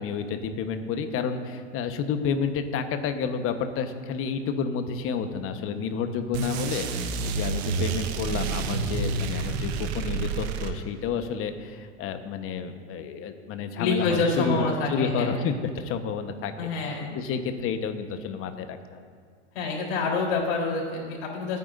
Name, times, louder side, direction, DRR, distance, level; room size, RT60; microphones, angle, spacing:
voice 1, 0.0-19.0, left 6 dB, 35° left, 8 dB, 1.2 m, -30 dB
sound 1, 6.3-11.1, right 5 dB, 60° right, 1.3 m, -29 dB
voice 2, 13.8-15.4 16.6-17.2 19.5-21.6, left 3 dB, 65° left, -1 dB, 3.9 m, -27 dB
25.0 x 9.5 x 2.6 m, 2.1 s
hypercardioid pair, 105°, 36 cm